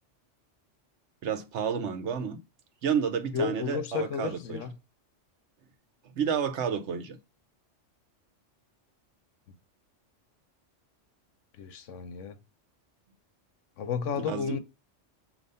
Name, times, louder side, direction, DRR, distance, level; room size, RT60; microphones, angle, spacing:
voice 1, 1.2-2.4 2.8-4.6 6.2-7.2 14.1-14.6, right 7 dB, 70° right, 1.1 m, -30 dB
voice 2, 3.3-4.7 11.6-12.4 13.8-14.6, left 6 dB, 80° left, 1.1 m, -32 dB
6.4 x 2.8 x 5.4 m
omnidirectional pair, 1.2 m